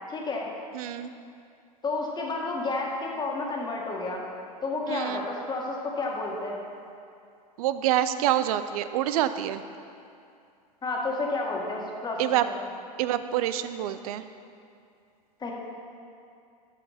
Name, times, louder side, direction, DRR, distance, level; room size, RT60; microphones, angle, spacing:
voice 1, 0.1-0.5 1.8-4.2 4.6-6.6 10.8-12.5 15.4-15.5, left 3 dB, 20° left, -1 dB, 1.8 m, -31 dB
voice 2, 0.7-1.1 4.9-5.3 7.6-9.6 12.2-12.5 13.0-14.2, right 12 dB, 65° right, 12 dB, 0.5 m, -26 dB
13.0 x 5.7 x 4.1 m, 2.4 s
hypercardioid pair, 100°, 21 cm